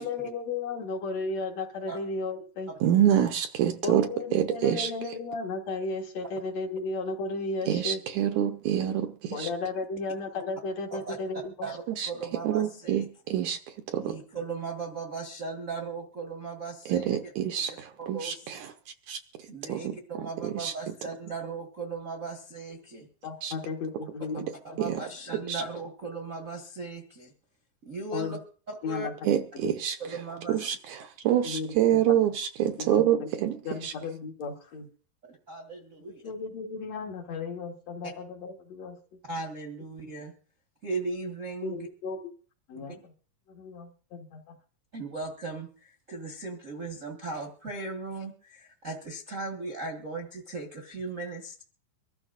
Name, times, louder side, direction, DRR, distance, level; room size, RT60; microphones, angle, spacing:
voice 1, 0.0-2.7 3.8-8.0 9.3-11.5 23.2-24.5 28.1-28.4 28.8-29.1 29.6-29.7 31.4-32.1 32.9-33.3 33.6-34.9 36.2-39.0 41.6-42.2 42.7-43.1 43.5-44.5, left 3 dB, 60° left, 2 dB, 2.3 m, -34 dB
voice 2, 2.8-4.9 7.7-9.5 12.0-12.1 12.4-13.6 13.9-14.2 16.9-18.7 19.1-19.2 19.7-20.0 20.4-20.7 23.4-23.5 24.8-25.0 25.5-25.6 29.3-30.0 30.5-33.6 33.8-33.9, right 10 dB, 75° right, 7 dB, 1.9 m, -26 dB
voice 3, 11.6-13.1 14.0-17.3 18.0-18.5 19.5-23.1 24.6-27.3 27.8-28.4 28.7-29.1 30.0-30.6 35.3-36.2 39.3-40.3 40.8-41.9 44.9-51.6, right 3 dB, 40° right, 0 dB, 1.1 m, -37 dB
24.5 x 13.0 x 2.5 m, 0.41 s
omnidirectional pair, 3.9 m